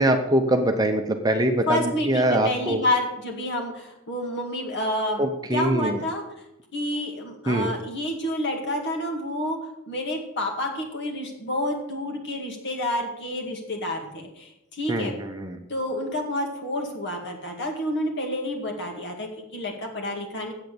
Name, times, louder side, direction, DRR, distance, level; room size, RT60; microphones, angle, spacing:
voice 1, 0.0-2.8 5.2-6.0 7.5-7.7 14.9-15.6, right 1 dB, 15° right, 5 dB, 0.8 m, -23 dB
voice 2, 1.7-5.2 5.5-6.2 6.7-9.6 9.9-15.1 15.7-20.5, left 1 dB, 55° left, 2 dB, 2.2 m, -29 dB
8.4 x 7.9 x 6.8 m, 0.84 s
head